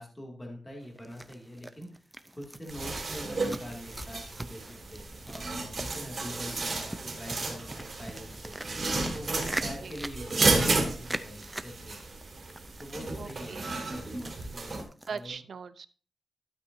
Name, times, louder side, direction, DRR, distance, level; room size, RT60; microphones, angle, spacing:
voice 1, 0.0-1.9 2.3-8.5 9.1-12.0 12.8-15.4, equal, 15° left, 0 dB, 2.3 m, -44 dB
sound 1, 0.8-15.3, right 1 dB, 10° right, 0.5 m, -43 dB
sound 2, 2.7-14.8, right 3 dB, 40° right, 2.6 m, -32 dB
voice 2, 13.2-13.7 15.1-15.9, right 5 dB, 60° right, 14 dB, 0.6 m, -40 dB
12.5 x 8.6 x 2.6 m, 0.40 s
wide cardioid pair, 175°, 0 cm